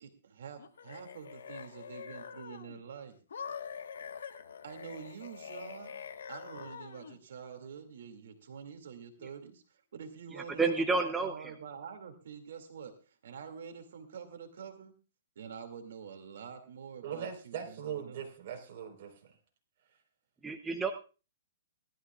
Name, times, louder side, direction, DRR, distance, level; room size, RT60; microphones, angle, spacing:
voice 1, 0.0-3.2 4.6-6.0 6.3-14.9 15.4-18.2, right 7 dB, 70° right, 6 dB, 2.5 m, -47 dB
sound 1, 0.6-2.8 3.3-7.2, left 7 dB, 90° left, 1.4 m, -45 dB
voice 2, 10.3-11.5 20.4-20.9, right 3 dB, 5° right, 5 dB, 0.8 m, -30 dB
voice 3, 17.0-19.3, right 8 dB, 45° right, 3 dB, 4.3 m, -40 dB
19.0 x 13.0 x 2.4 m, 0.33 s
hypercardioid pair, 165°, 0 cm